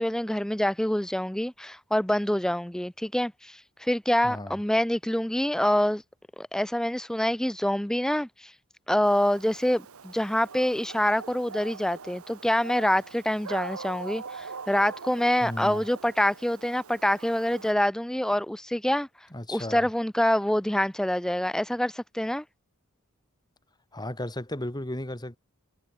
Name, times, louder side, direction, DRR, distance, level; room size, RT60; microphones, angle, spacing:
voice 1, 0.0-6.0 6.4-8.5 8.9-19.1 19.5-22.4, left 1 dB, 5° left, 0.4 m, -26 dB
voice 2, 4.2-4.6 15.4-15.8 19.3-19.9 23.9-25.4, left 1 dB, 20° left, 4.0 m, -35 dB
Dog, 9.0-17.7, right 5 dB, 75° right, 1.1 m, -42 dB
head